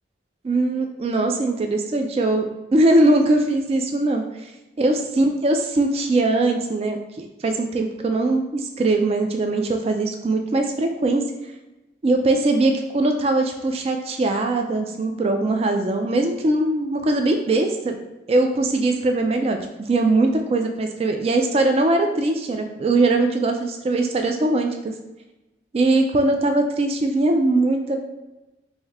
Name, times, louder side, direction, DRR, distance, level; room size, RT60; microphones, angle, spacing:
voice 1, 0.4-4.2 4.8-11.2 12.0-17.9 18.3-24.9 25.7-28.0, right 2 dB, 35° right, 4 dB, 0.3 m, -21 dB
3.5 x 2.6 x 3.2 m, 1.1 s
head